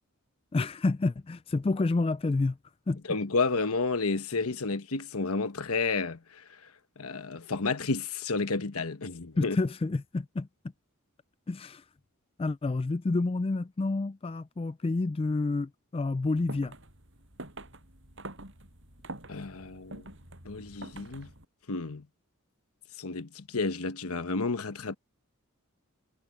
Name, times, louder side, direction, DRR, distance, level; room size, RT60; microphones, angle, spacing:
voice 1, 0.5-2.6 2.9-3.0 9.4-10.5 11.5-11.8 12.4-16.7, left 3 dB, 25° left, 0.3 m, -29 dB
voice 2, 3.1-6.2 7.0-9.6 19.3-20.0 20.4-21.3 21.7-22.0 23.0-25.0, left 3 dB, 80° left, 1.1 m, -31 dB
sound 1, 16.2-21.5, right 2 dB, 55° right, 7.1 m, -46 dB
head